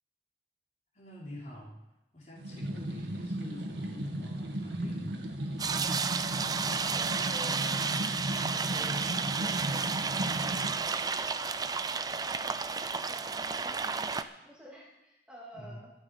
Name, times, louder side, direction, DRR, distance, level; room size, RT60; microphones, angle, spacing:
voice 1, 0.9-1.8 2.1-5.2 15.5-15.8, left 1 dB, 40° left, -5 dB, 4.4 m, -46 dB
sound 1, 2.4-10.7, right 1 dB, 80° right, 1.8 m, -36 dB
sound 2, 5.6-14.2, right 5 dB, 20° right, 0.5 m, -32 dB
voice 2, 6.8-9.0 9.4-11.3 11.9-12.5 13.1-15.9, equal, 5° right, -5 dB, 2.3 m, -51 dB
21.0 x 7.4 x 5.2 m, 0.95 s
head